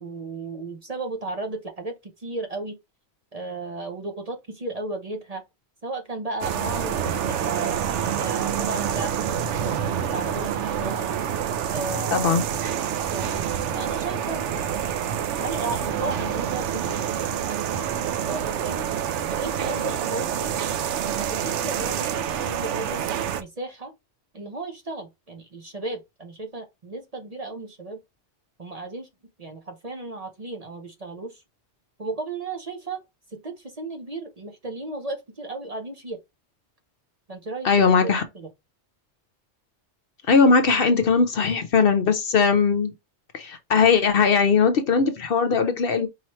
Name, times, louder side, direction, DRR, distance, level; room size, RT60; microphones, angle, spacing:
voice 1, 0.0-2.8 3.3-5.4 5.8-7.8 8.2-11.3 11.7-12.4 13.1-15.0 15.4-17.8 18.2-18.9 19.3-20.6 21.0-23.0 23.4-23.9 24.3-28.0 28.6-29.1 29.4-31.4 32.0-33.0 33.3-36.2 37.3-38.5, right 2 dB, 35° right, 0.8 m, -35 dB
sound 1, 6.4-23.4, right 9 dB, 85° right, 0.9 m, -27 dB
voice 2, 12.1-12.4 37.6-38.2 40.3-42.9 43.3-46.1, left 5 dB, 60° left, 0.8 m, -19 dB
4.8 x 3.0 x 3.0 m
omnidirectional pair, 1.2 m